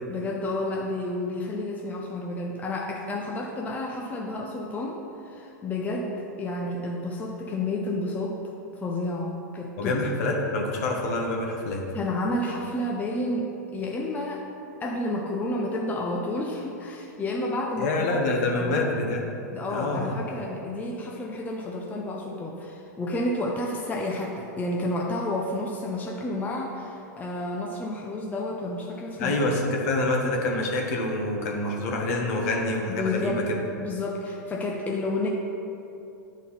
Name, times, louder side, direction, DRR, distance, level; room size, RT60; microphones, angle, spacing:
voice 1, 0.1-8.4 8.7-10.3 11.9-14.5 14.8-18.9 19.5-29.4 32.9-33.4 33.8-35.3, left 1 dB, 15° left, -1 dB, 0.7 m, -30 dB
voice 2, 9.8-11.8 17.8-19.2 19.7-20.1 29.2-33.6, left 2 dB, 55° left, 0 dB, 1.4 m, -26 dB
9.7 x 4.1 x 4.2 m, 2.8 s
hypercardioid pair, 110°, 10 cm